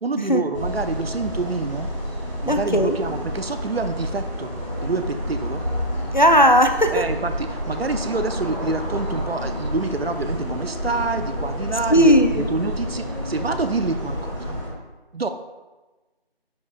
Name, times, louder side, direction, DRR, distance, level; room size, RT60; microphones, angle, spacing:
voice 1, 0.0-1.9 2.4-4.5 4.8-5.6 6.9-14.6 15.1-15.3, right 3 dB, 70° right, 9 dB, 0.6 m, -27 dB
sound 1, 0.5-14.7, equal, 30° right, 1.7 m, -29 dB
voice 2, 2.4-3.0 6.1-7.0 11.9-12.5, equal, 50° left, 7 dB, 0.5 m, -16 dB
10.5 x 4.8 x 2.4 m, 1.2 s
figure-of-eight pair, 180°, 31 cm